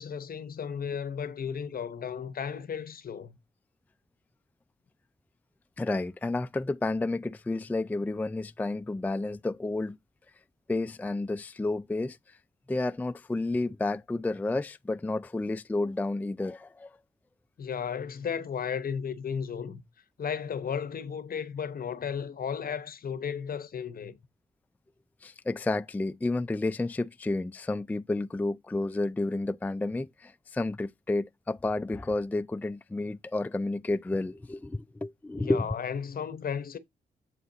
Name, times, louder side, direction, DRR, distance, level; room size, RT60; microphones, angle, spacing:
voice 1, 0.0-3.4 17.6-19.8 20.2-24.1 35.4-36.8, left 7 dB, 55° left, 0.9 m, -34 dB
voice 2, 5.8-10.0 10.7-12.4 12.7-16.9 25.2-35.7, left 2 dB, 10° left, 0.3 m, -31 dB
7.8 x 4.3 x 3.9 m
cardioid pair, 60°, 17 cm